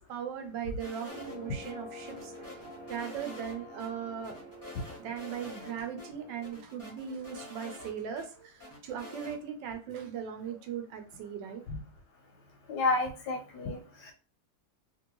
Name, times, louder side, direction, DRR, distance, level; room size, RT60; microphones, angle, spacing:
voice 1, 0.1-2.6 2.9-4.4 5.0-11.6, right 8 dB, 75° right, 5 dB, 1.3 m, -39 dB
sound 1, 0.8-1.7 2.1-3.5 3.8-3.9 4.2-5.7 6.0-6.1 6.4-8.3 8.6-9.4, left 2 dB, 20° left, 0.5 m, -47 dB
sound 2, 1.1-6.5, left 1 dB, 50° right, 0.7 m, -47 dB
voice 2, 12.7-14.1, left 3 dB, 70° left, 3 dB, 1.0 m, -31 dB
2.9 x 2.6 x 2.9 m, 0.35 s
omnidirectional pair, 2.0 m